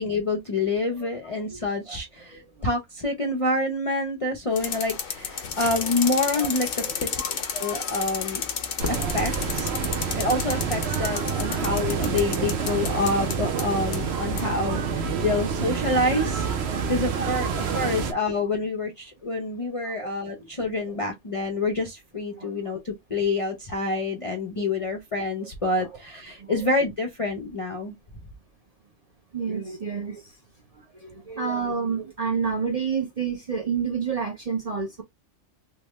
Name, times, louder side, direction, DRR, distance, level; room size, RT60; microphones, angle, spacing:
voice 1, 0.0-7.1 7.5-8.5 8.9-16.5 16.9-27.9, left 2 dB, 40° left, 0.5 m, -27 dB
sound 1, 4.6-14.5, left 7 dB, 90° left, 1.1 m, -32 dB
voice 2, 6.8-7.4 8.9-9.5 12.4-12.5 15.2-15.5 16.8-16.9 19.8-20.0 20.4-20.5 20.9-21.0 22.3-22.5 24.6-24.7 25.8-25.9 26.4-26.5 29.3-30.3 31.0-35.0, right 6 dB, 40° right, 0.6 m, -30 dB
sound 2, 8.8-18.1, right 6 dB, 65° right, 0.9 m, -28 dB
3.4 x 2.1 x 3.0 m
omnidirectional pair, 1.3 m